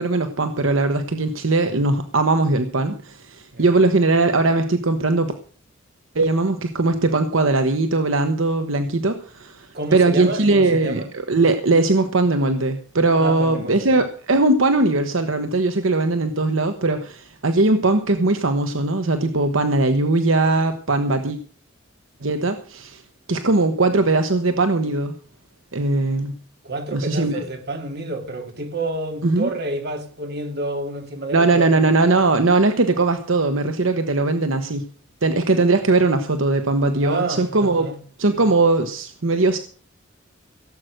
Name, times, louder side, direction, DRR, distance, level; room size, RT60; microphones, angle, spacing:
voice 1, 0.0-5.3 6.1-21.4 22.2-23.0 23.3-25.1 25.7-26.3 26.9-27.4 29.2-29.5 31.3-34.8 35.2-37.9 38.2-39.6, right 2 dB, 80° right, 1.1 m, -20 dB
voice 2, 9.7-11.1 13.2-13.9 26.6-31.9 37.0-38.0, right 2 dB, 55° right, 2.6 m, -29 dB
17.0 x 7.8 x 6.4 m
head